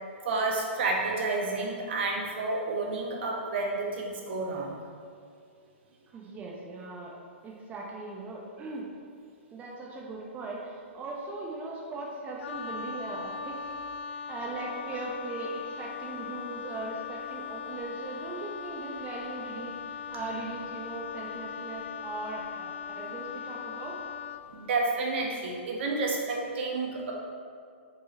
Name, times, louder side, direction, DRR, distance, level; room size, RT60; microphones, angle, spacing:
voice 1, 0.2-4.8 24.5-27.1, right 3 dB, 60° right, -1 dB, 1.4 m, -30 dB
voice 2, 6.1-7.2 7.4-8.8 9.5-13.5 14.3-23.9, right 3 dB, 20° right, -3 dB, 0.8 m, -39 dB
Wind instrument woodwind instrument, 12.4-24.5, left 7 dB, 65° left, 0.4 m, -39 dB
6.1 x 4.9 x 4.1 m, 2.2 s
hypercardioid pair, 125°, 7 cm